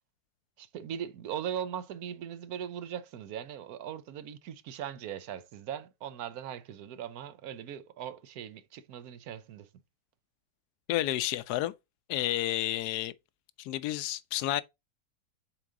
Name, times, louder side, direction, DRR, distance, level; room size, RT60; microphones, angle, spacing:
voice 1, 0.6-9.7, right 9 dB, 70° right, 1.2 m, -39 dB
voice 2, 10.9-11.7 12.1-13.1 13.6-14.6, left 14 dB, 80° left, 1.1 m, -30 dB
7.3 x 4.0 x 3.7 m
omnidirectional pair, 1.7 m